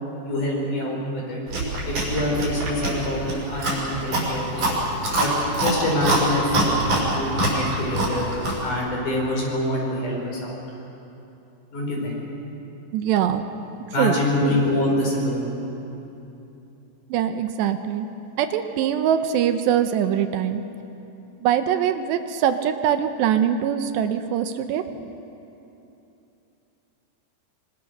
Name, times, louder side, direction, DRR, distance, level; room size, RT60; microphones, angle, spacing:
voice 1, 0.2-1.4 1.8-4.8 5.2-8.2 8.6-10.6 11.7-12.2 13.9-15.5, left 1 dB, 45° left, -2 dB, 6.4 m, -25 dB
Chewing mastication, 1.5-8.7, right 1 dB, 45° right, 7.4 m, -25 dB
voice 2, 12.9-13.4 14.0-14.2 17.1-18.1 18.4-20.6 21.4-24.8, right 9 dB, 80° right, 8 dB, 3.0 m, -22 dB
25.5 x 24.5 x 6.7 m, 2.9 s
omnidirectional pair, 5.0 m